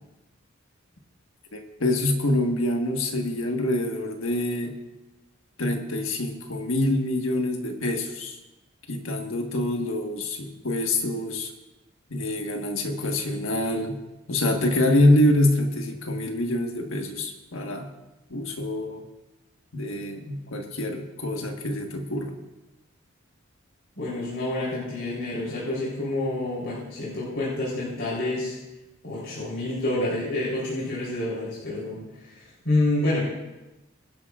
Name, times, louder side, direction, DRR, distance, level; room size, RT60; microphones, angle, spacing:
voice 1, 1.5-4.7 5.6-8.4 8.9-11.5 12.1-14.0 14.3-17.9 18.3-19.0 19.7-22.4, left 1 dB, 75° left, 3 dB, 1.6 m, -25 dB
voice 2, 24.0-28.5 29.0-32.4 32.6-33.2, left 2 dB, 60° left, -7 dB, 3.9 m, -28 dB
24.0 x 10.5 x 2.5 m, 1.0 s
head